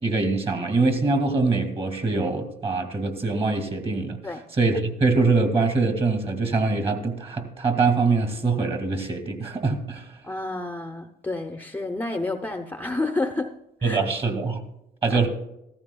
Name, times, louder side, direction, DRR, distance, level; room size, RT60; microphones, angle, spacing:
voice 1, 0.0-4.2 4.6-10.1 13.8-14.6 15.0-15.3, right 3 dB, 35° right, 6 dB, 2.1 m, -23 dB
voice 2, 10.2-13.5 13.8-14.0 15.1-15.3, left 2 dB, 10° left, 6 dB, 0.7 m, -29 dB
14.5 x 14.5 x 2.3 m, 0.86 s
cardioid pair, 110°, 17 cm